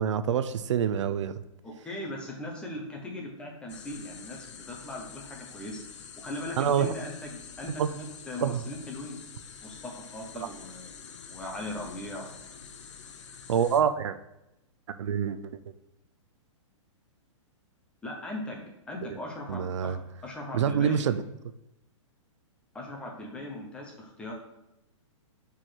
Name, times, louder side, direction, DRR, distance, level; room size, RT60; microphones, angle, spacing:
voice 1, 0.0-1.4 6.6-6.9 7.8-7.9 8.4-8.6 10.4-10.5 13.5-14.2 14.9-15.4 19.1-19.2 19.5-20.0 20.5-21.2, right 8 dB, 65° right, 12 dB, 0.4 m, -26 dB
voice 2, 1.6-5.8 6.2-9.2 9.6-10.9 11.3-12.3 18.0-20.0 20.2-21.1 22.7-24.3, left 1 dB, 5° left, -1 dB, 0.6 m, -39 dB
sound 1, 3.7-13.8, left 6 dB, 60° left, 0.7 m, -47 dB
4.8 x 4.5 x 4.3 m, 0.90 s
hypercardioid pair, 170°, 17 cm